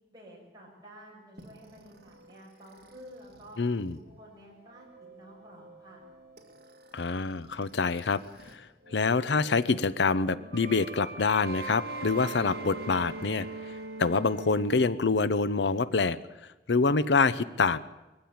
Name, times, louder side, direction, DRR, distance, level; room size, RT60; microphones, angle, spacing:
voice 1, 0.1-3.6 4.0-6.0, equal, 20° right, -3 dB, 7.1 m, -51 dB
sound 1, 1.4-8.6 8.8-15.3, right 3 dB, 55° right, 2.6 m, -43 dB
voice 2, 3.6-4.0 6.9-8.2 8.5-8.7 8.9-13.5 14.0-16.2 16.7-17.8, left 4 dB, 80° left, 16 dB, 0.7 m, -26 dB
21.5 x 15.0 x 8.7 m, 1.1 s
head